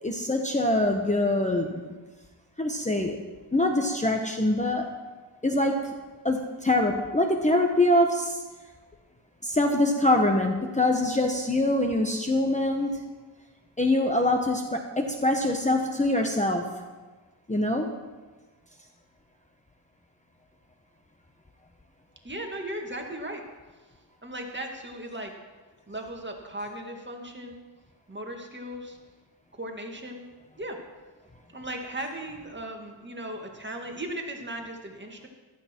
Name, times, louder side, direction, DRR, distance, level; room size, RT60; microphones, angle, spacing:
voice 1, 0.0-1.9 2.6-3.2 3.5-4.9 5.4-6.0 6.2-8.4 9.4-13.0 13.8-16.7 17.5-17.9, left 1 dB, 15° left, 3 dB, 1.0 m, -24 dB
voice 2, 22.2-23.4 24.2-25.3 25.9-27.6 28.1-29.0 29.6-30.2 30.6-30.8 31.5-35.3, right 1 dB, 25° right, 2 dB, 2.0 m, -37 dB
15.0 x 12.5 x 4.5 m, 1.3 s
wide cardioid pair, 100°, 45 cm